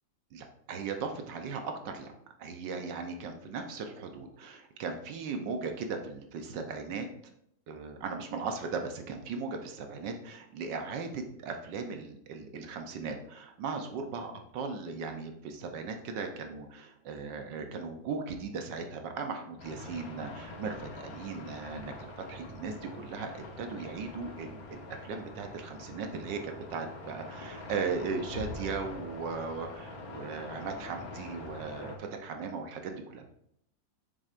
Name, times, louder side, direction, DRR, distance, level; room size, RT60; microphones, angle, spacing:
voice 1, 0.3-2.1 2.4-7.1 7.7-33.3, right 4 dB, 75° right, 5 dB, 1.4 m, -38 dB
sound 1, 19.6-32.0, left 2 dB, 55° left, 1.5 m, -44 dB
7.6 x 6.4 x 2.5 m, 0.75 s
omnidirectional pair, 2.0 m